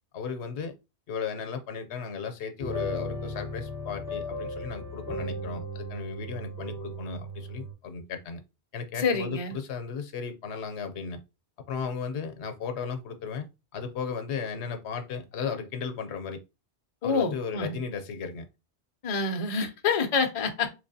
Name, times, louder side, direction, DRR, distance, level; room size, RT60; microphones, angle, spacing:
voice 1, 0.1-0.7 1.1-8.4 8.7-11.2 11.7-13.5 13.7-16.4 17.0-18.4, left 6 dB, 85° left, 0.9 m, -35 dB
sound 1, 2.6-7.7, left 1 dB, 20° left, 1.0 m, -36 dB
voice 2, 9.0-9.5 17.0-17.8 19.0-20.7, left 4 dB, 40° left, 0.6 m, -27 dB
3.7 x 3.1 x 2.6 m
omnidirectional pair, 1.1 m